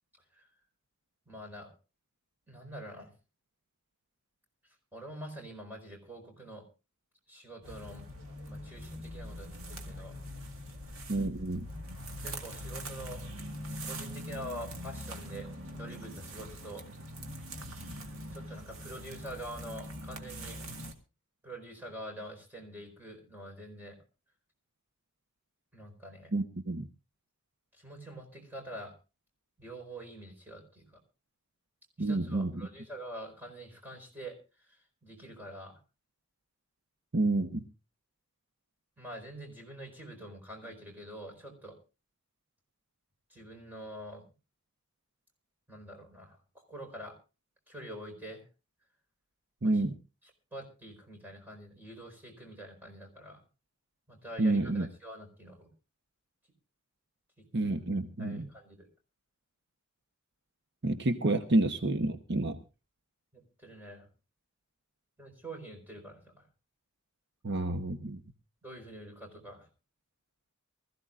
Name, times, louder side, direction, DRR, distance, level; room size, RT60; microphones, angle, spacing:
voice 1, 1.3-1.7 2.5-3.1 4.9-6.6 7.3-8.0 8.4-10.2 12.2-13.2 13.7-16.8 17.9-20.6 21.4-24.0 25.7-26.3 27.8-28.9 29.6-31.0 32.0-34.4 34.7-35.8 39.0-41.8 43.3-44.2 45.7-47.2 47.7-48.4 49.6-49.8 50.5-53.4 54.1-55.7 57.4-57.5 58.2-58.9 63.3-64.1 65.2-66.5 68.6-69.7, right 1 dB, 10° right, 1 dB, 4.5 m, -46 dB
sound 1, 7.6-20.9, equal, 80° right, 2.0 m, -43 dB
voice 2, 11.1-11.7 26.3-26.9 32.0-32.7 37.1-37.6 49.6-49.9 54.4-54.9 57.5-58.5 60.8-62.6 67.4-68.2, right 2 dB, 55° right, 7 dB, 1.0 m, -29 dB
24.0 x 15.0 x 2.5 m, 0.31 s
head